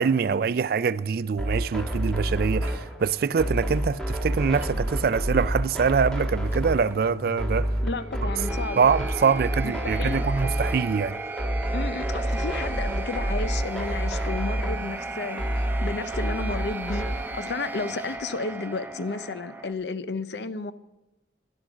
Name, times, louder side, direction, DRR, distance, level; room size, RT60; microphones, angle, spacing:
voice 1, 0.0-7.8 8.8-11.2, right 6 dB, 55° right, 0.4 m, -24 dB
sound 1, 1.4-17.3, equal, 5° left, 1.5 m, -29 dB
sound 2, 1.7-19.7, right 2 dB, 10° right, 0.8 m, -37 dB
voice 2, 7.8-8.8 9.6-10.2 11.7-20.7, left 3 dB, 75° left, 0.7 m, -32 dB
12.0 x 11.5 x 6.1 m
head